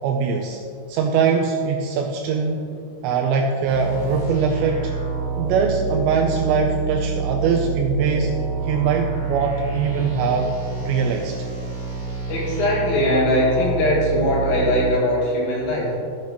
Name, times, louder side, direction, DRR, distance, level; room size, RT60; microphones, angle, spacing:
voice 1, 0.0-0.6 0.9-2.7 3.0-4.9 5.4-8.4 8.6-10.6 10.8-11.4, right 5 dB, 90° right, 2 dB, 2.6 m, -22 dB
sound 1, 3.7-14.9, right 5 dB, 20° left, 0.8 m, -27 dB
voice 2, 12.3-16.0, left 1 dB, 70° left, -5 dB, 4.3 m, -20 dB
14.5 x 8.3 x 3.0 m, 2.6 s
omnidirectional pair, 5.7 m